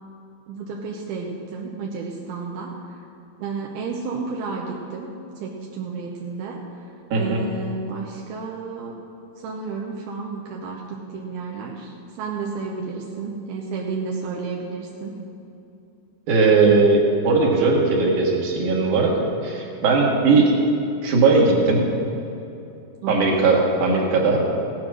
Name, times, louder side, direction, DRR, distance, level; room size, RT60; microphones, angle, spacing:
voice 1, 0.5-3.0 3.4-9.0 9.4-15.1 20.3-20.7 23.0-23.3, right 4 dB, 80° right, -1 dB, 2.8 m, -32 dB
voice 2, 7.1-7.4 16.3-19.1 19.4-20.5 21.0-21.8 23.1-24.4, right 3 dB, 60° right, -2 dB, 3.3 m, -18 dB
16.0 x 9.4 x 6.2 m, 2.8 s
omnidirectional pair, 4.4 m